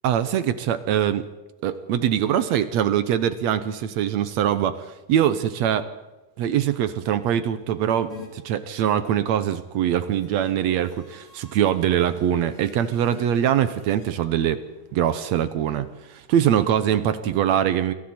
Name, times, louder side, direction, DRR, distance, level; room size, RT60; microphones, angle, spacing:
voice 1, 0.0-1.3 1.6-5.9 6.4-14.6 14.9-17.9, right 10 dB, 70° right, 12 dB, 1.9 m, -23 dB
sound 1, 8.1-8.3 9.7-14.1, left 5 dB, 40° left, 4.0 m, -48 dB
28.5 x 23.0 x 4.4 m, 1.1 s
omnidirectional pair, 3.7 m